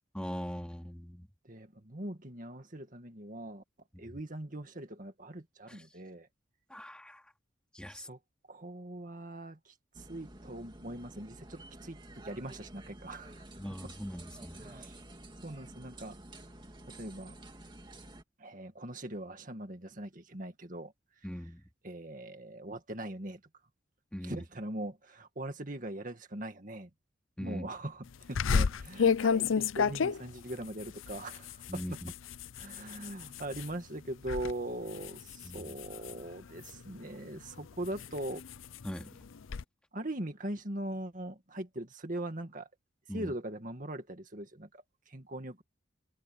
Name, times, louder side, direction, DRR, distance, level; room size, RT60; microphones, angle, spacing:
voice 1, 0.1-1.3 5.7-5.8 6.7-7.2 7.7-8.1 13.6-14.6 21.2-21.6 24.1-24.4 27.4-27.7 31.7-32.1 35.4-35.7 38.8-39.2 43.1-43.3, equal, 5° left, 2.5 m, -41 dB
voice 2, 1.4-3.6 4.0-6.3 7.9-8.2 8.5-13.5 13.8-13.9 14.5-15.0 15.4-16.2 16.9-17.4 18.4-20.9 21.8-23.4 24.2-26.9 27.4-32.0 32.6-38.4 39.9-42.7 43.1-45.6, right 1 dB, 40° right, 2.1 m, -41 dB
sound 1, 9.9-18.2, right 1 dB, 25° right, 2.6 m, -50 dB
sound 2, 28.4-33.7 34.1-34.5 34.9-36.9 37.5-39.6, left 6 dB, 85° left, 0.5 m, -32 dB
head